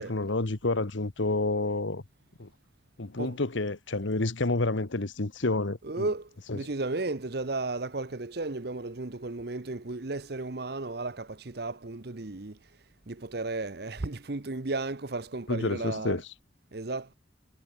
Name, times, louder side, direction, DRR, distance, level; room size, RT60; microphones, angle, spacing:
voice 1, 0.0-2.0 2.4-2.5 3.0-6.1 6.5-6.7 15.5-16.2, left 2 dB, 75° left, 1.3 m, -29 dB
voice 2, 5.8-12.6 13.1-16.2 16.7-17.1, right 2 dB, 55° right, 1.0 m, -34 dB
head